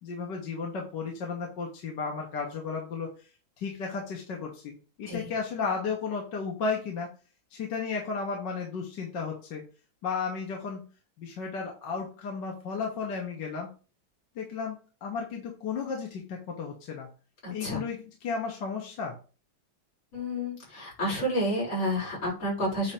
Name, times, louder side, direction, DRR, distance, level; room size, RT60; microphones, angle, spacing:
voice 1, 0.0-3.1 3.6-7.1 7.5-9.6 10.0-10.9 11.2-13.7 14.4-17.1 17.5-19.2, left 5 dB, 60° left, 0 dB, 1.9 m, -34 dB
voice 2, 17.4-17.8 20.1-22.9, equal, 80° left, -4 dB, 5.1 m, -30 dB
8.7 x 2.9 x 5.0 m, 0.35 s
omnidirectional pair, 2.2 m